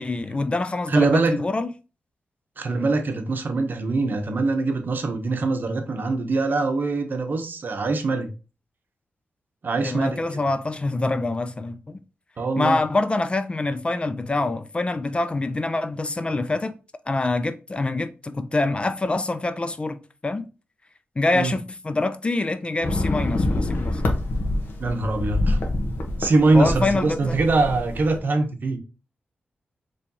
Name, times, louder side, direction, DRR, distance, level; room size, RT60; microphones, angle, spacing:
voice 1, 0.0-1.7 9.8-12.0 12.6-16.7 17.1-20.5 21.2-24.0 26.5-27.4, left 2 dB, 30° left, 0.4 m, -25 dB
voice 2, 0.9-1.4 2.6-8.3 9.6-10.2 12.4-12.8 21.3-21.5 24.8-25.6 26.2-28.8, right 3 dB, 55° right, 0.8 m, -23 dB
sound 1, 22.8-28.2, left 2 dB, 65° left, 0.9 m, -26 dB
4.3 x 3.1 x 2.7 m
cardioid pair, 75°, 4 cm